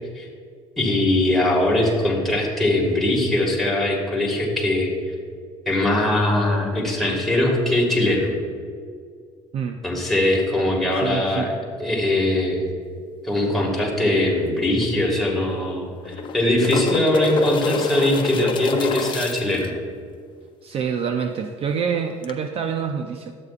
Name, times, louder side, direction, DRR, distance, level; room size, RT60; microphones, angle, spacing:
voice 1, 0.8-4.9 5.7-8.3 9.8-12.7 13.2-19.7, left 1 dB, ahead, -3 dB, 2.0 m, -21 dB
voice 2, 10.9-11.5 20.6-23.3, right 7 dB, 50° right, 6 dB, 0.5 m, -26 dB
sound 1, 14.5-14.6 14.8-14.9 16.0-19.7 22.2-22.3, left 5 dB, 40° left, 0.6 m, -27 dB
12.0 x 8.2 x 2.5 m, 2.1 s
cardioid pair, 135°, 13 cm